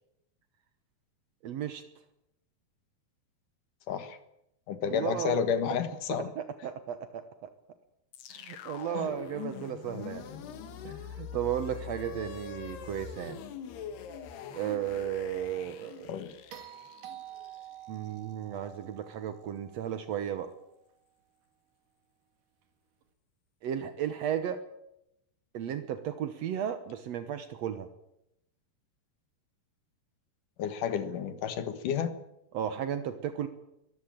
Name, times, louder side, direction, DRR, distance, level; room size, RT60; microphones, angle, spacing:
voice 1, 1.4-1.8 4.9-5.4 6.1-7.5 8.3-10.2 10.8-13.4 14.5-16.2 17.9-20.5 23.6-24.6 25.5-27.9 32.5-33.5, right 9 dB, 80° right, 10 dB, 1.5 m, -34 dB
voice 2, 3.9-4.2 4.7-6.3 8.9-9.1 16.1-16.3 30.6-32.1, left 7 dB, 60° left, 10 dB, 2.8 m, -31 dB
sound 1, 8.1-18.3, left 8 dB, 80° left, 3.6 m, -43 dB
sound 2, 16.5-20.8 23.0-23.1, right 12 dB, 60° right, 3.1 m, -49 dB
22.5 x 14.5 x 8.9 m, 0.83 s
omnidirectional pair, 4.6 m